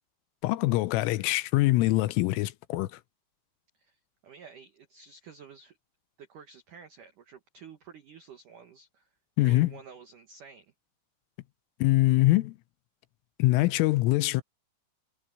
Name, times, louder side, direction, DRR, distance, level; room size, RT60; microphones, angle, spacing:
voice 1, 0.4-3.0 9.4-9.7 11.8-12.6 13.4-14.4, left 18 dB, 85° left, 3.3 m, -24 dB
voice 2, 3.8-5.8 6.2-9.1 9.4-10.7, right 6 dB, 85° right, 1.8 m, -50 dB
omnidirectional pair, 5.9 m